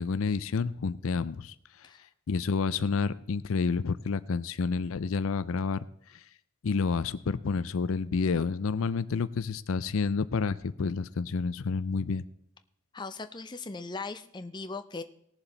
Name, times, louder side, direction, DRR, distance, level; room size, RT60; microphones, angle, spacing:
voice 1, 0.0-1.9 2.3-5.8 6.1-6.2 6.6-12.2, left 4 dB, 70° left, 15 dB, 0.5 m, -29 dB
voice 2, 12.9-15.0, left 3 dB, 20° left, 8 dB, 0.6 m, -39 dB
19.0 x 7.1 x 3.9 m, 0.73 s
head